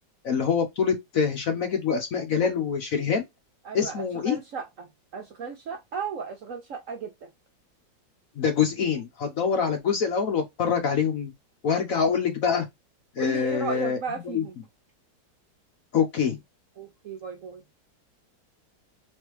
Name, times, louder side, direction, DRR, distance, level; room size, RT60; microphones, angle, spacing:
voice 1, 0.2-3.2 3.7-4.4 8.4-11.3 11.6-12.7 13.2-14.0 14.2-14.4 15.9-16.4, left 6 dB, 60° left, 1.0 m, -25 dB
voice 2, 3.6-7.3 9.6-9.7 13.2-14.6 16.8-17.6, right 5 dB, 60° right, 0.9 m, -35 dB
3.6 x 3.2 x 3.1 m
omnidirectional pair, 2.0 m